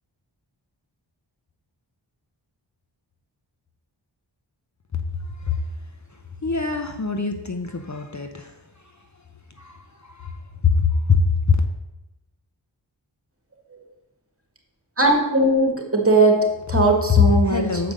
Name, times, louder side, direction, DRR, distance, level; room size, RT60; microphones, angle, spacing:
voice 1, 5.3-5.7 6.4-8.6 9.6-11.6 17.4-17.9, left 5 dB, 40° left, 5 dB, 0.7 m, -24 dB
voice 2, 15.0-17.9, right 2 dB, 30° right, 2 dB, 1.7 m, -19 dB
6.9 x 5.0 x 6.4 m, 0.97 s
wide cardioid pair, 50°, 47 cm